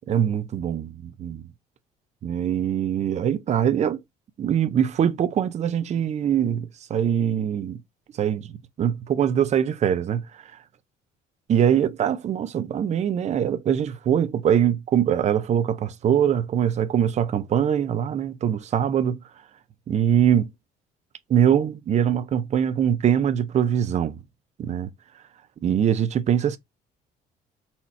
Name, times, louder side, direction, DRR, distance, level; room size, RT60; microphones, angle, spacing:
voice 1, 0.1-1.4 2.2-4.0 4.4-7.8 8.2-10.4 11.5-19.2 19.9-20.5 21.3-24.2 24.6-24.9 25.6-26.6, right 9 dB, 40° right, 0.6 m, -23 dB
4.2 x 2.3 x 4.3 m
cardioid pair, 110°, 17 cm